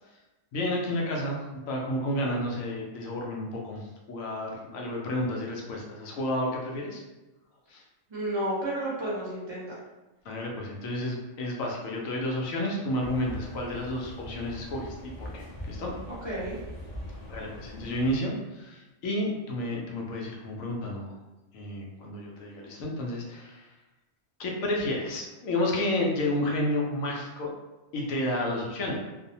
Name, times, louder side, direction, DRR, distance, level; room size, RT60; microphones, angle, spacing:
voice 1, 0.5-7.0 7.7-7.8 10.2-15.9 17.3-21.1 21.5-23.7 24.4-27.5 27.9-29.0, left 1 dB, 75° left, -1 dB, 1.0 m, -31 dB
voice 2, 8.1-9.8 16.1-16.5, right 1 dB, 25° right, -7 dB, 0.6 m, -32 dB
sound 1, 13.0-18.2, left 1 dB, 45° left, 0.5 m, -42 dB
2.6 x 2.1 x 2.7 m, 1.1 s
omnidirectional pair, 1.5 m